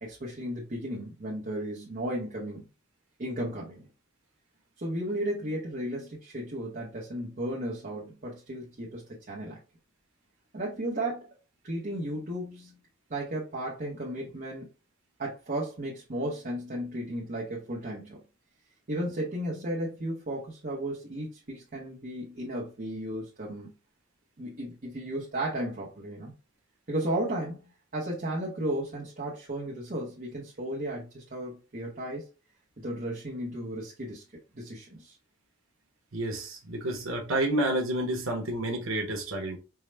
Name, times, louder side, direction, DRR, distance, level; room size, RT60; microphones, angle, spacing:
voice 1, 0.0-2.7 3.2-3.9 4.8-9.6 10.5-11.3 11.6-12.8 13.1-14.7 15.2-18.2 18.9-23.7 24.4-26.3 26.9-27.6 27.9-32.3 32.8-34.2 34.5-35.2, right 1 dB, 45° right, 0.9 m, -34 dB
voice 2, 36.1-39.6, right 1 dB, 80° right, 0.9 m, -29 dB
4.6 x 2.0 x 3.3 m
head